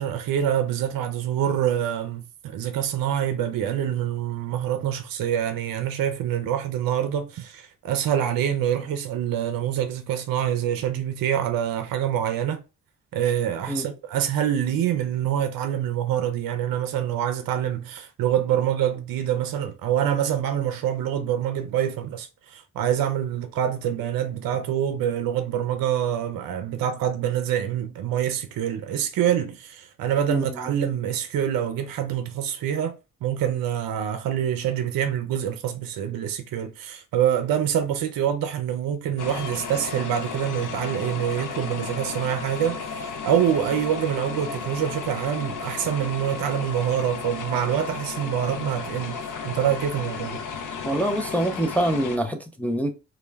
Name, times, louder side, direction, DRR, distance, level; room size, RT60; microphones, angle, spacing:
voice 1, 0.0-12.6 13.1-33.0 33.2-50.4, right 10 dB, 60° right, 0.6 m, -26 dB
voice 2, 30.3-30.6 50.8-52.9, right 1 dB, 5° left, 0.5 m, -25 dB
Subaru forester - Engine sound, 39.2-52.2, left 5 dB, 55° left, 0.7 m, -34 dB
2.3 x 2.1 x 3.2 m
hypercardioid pair, 45°, 39 cm